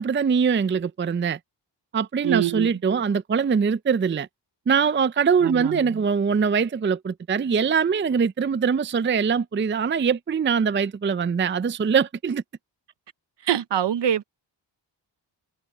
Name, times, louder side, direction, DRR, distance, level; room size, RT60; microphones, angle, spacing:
voice 1, 0.0-1.4 1.9-4.3 4.7-12.4, right 6 dB, 25° right, 0.5 m, -22 dB
voice 2, 2.2-2.7 5.4-6.0 13.4-14.2, right 10 dB, 65° right, 0.8 m, -25 dB
cardioid pair, 85°, 45 cm